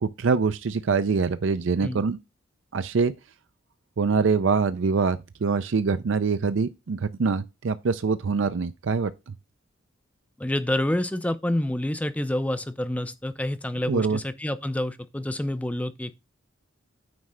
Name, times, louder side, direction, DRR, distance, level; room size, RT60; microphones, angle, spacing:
voice 1, 0.0-2.2 2.7-3.1 4.0-9.3 13.9-14.2, right 5 dB, 70° right, 0.5 m, -24 dB
voice 2, 10.4-16.1, left 1 dB, 5° left, 0.4 m, -28 dB
9.3 x 3.2 x 6.3 m
head